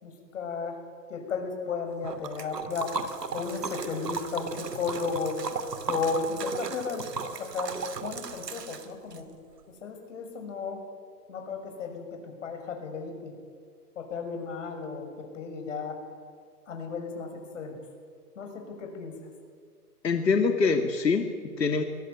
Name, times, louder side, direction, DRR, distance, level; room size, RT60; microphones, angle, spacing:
voice 1, 0.0-0.8 1.1-2.9 3.3-5.4 5.9-7.1 7.4-9.3 9.8-10.8 11.3-13.3 14.0-16.0 16.7-17.8 18.4-19.1, left 4 dB, 50° left, 4 dB, 6.2 m, -34 dB
Liquid, 2.0-9.2, right 5 dB, 75° right, 2.5 m, -36 dB
voice 2, 20.0-21.8, left 4 dB, 90° left, 5 dB, 2.4 m, -24 dB
22.0 x 21.0 x 9.3 m, 2.2 s
hypercardioid pair, 165°, 48 cm